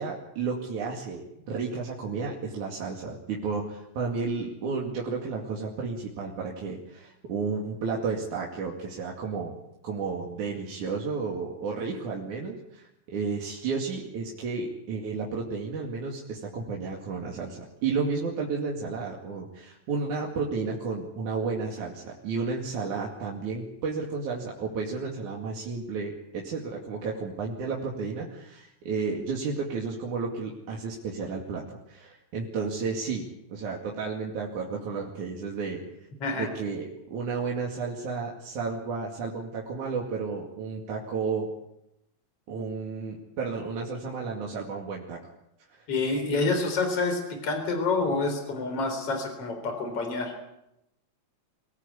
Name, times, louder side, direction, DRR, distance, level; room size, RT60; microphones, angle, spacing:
voice 1, 0.0-9.5 9.8-35.8 36.3-41.5 42.5-45.2, right 4 dB, 80° right, -2 dB, 3.9 m, -32 dB
voice 2, 45.9-50.3, left 3 dB, 50° left, 5 dB, 5.0 m, -28 dB
25.0 x 18.0 x 8.5 m, 0.85 s
omnidirectional pair, 3.4 m